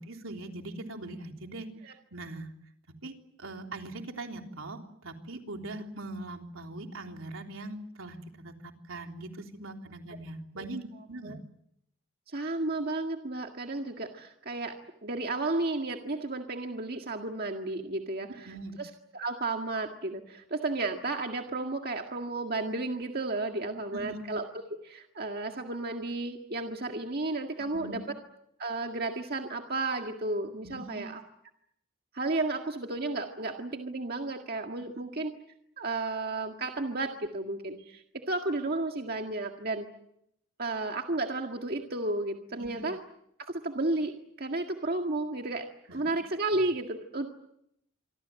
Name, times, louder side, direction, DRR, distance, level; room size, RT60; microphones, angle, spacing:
voice 1, 0.0-2.5 3.0-3.1 3.4-11.4 18.4-18.7 23.9-24.2 27.7-28.0 30.6-31.1 42.6-42.8 45.9-46.1, right 2 dB, 75° right, 3 dB, 3.5 m, -41 dB
voice 2, 12.3-14.8 15.0-28.0 28.6-31.2 32.1-35.3 35.8-39.9 40.6-43.0 43.4-45.7 45.9-47.3, right 2 dB, 45° right, 3 dB, 1.9 m, -33 dB
27.0 x 24.5 x 7.7 m, 0.77 s
head